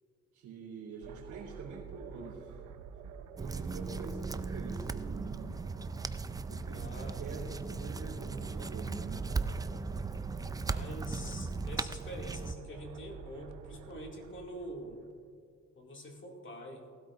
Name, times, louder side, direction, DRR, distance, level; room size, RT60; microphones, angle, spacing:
voice 1, 0.3-2.6 3.4-5.6 6.5-9.4, right 4 dB, 75° right, -2 dB, 3.4 m, -45 dB
sound 1, 1.0-15.3, right 7 dB, 90° right, 0.7 m, -49 dB
sound 2, 3.4-12.5, right 4 dB, 15° right, 0.3 m, -37 dB
voice 2, 6.7-7.2 10.5-15.0 15.8-16.9, equal, 40° left, 0 dB, 2.3 m, -45 dB
19.0 x 12.5 x 2.5 m, 2.2 s
cardioid pair, 90°, 30 cm